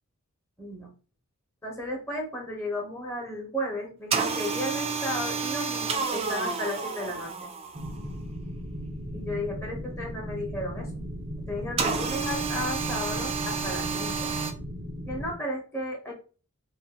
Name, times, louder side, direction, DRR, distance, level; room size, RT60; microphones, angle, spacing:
voice 1, 0.6-0.9 1.6-7.3 9.1-10.9 11.5-14.3 15.1-16.1, left 1 dB, 10° left, -3 dB, 1.1 m, -34 dB
sound 1, 4.1-8.0 11.8-14.5, right 5 dB, 25° right, 0.4 m, -30 dB
sound 2, 7.7-15.3, equal, 55° right, 1.0 m, -37 dB
2.7 x 2.6 x 3.7 m, 0.36 s
head